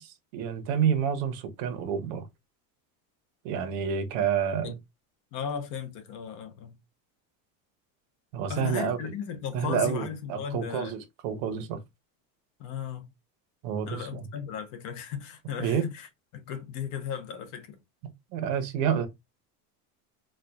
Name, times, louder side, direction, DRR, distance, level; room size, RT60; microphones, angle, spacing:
voice 1, 0.0-2.2 3.4-4.8 8.3-9.0 9.5-11.8 13.6-14.3 15.6-15.9 18.3-19.1, right 7 dB, 60° right, 0.9 m, -29 dB
voice 2, 5.3-6.8 8.5-10.9 12.6-13.1 13.9-17.8, left 8 dB, 45° left, 0.8 m, -36 dB
4.3 x 2.3 x 2.2 m
cardioid pair, 165°, 44 cm